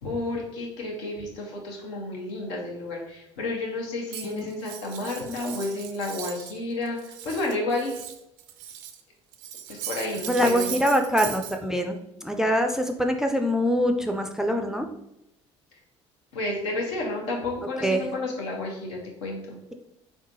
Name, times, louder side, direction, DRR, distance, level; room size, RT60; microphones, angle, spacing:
voice 1, 0.0-8.0 9.7-10.7 16.3-19.6, left 2 dB, 75° left, -1 dB, 0.9 m, -31 dB
Cutlery silverware, 4.1-6.6 6.9-9.0 9.3-11.6, right 10 dB, 65° right, 0.4 m, -38 dB
voice 2, 5.2-5.6 10.2-14.9 17.8-18.1, equal, 5° right, 4 dB, 0.4 m, -24 dB
3.6 x 3.5 x 2.7 m, 0.84 s
hypercardioid pair, 60°, 15 cm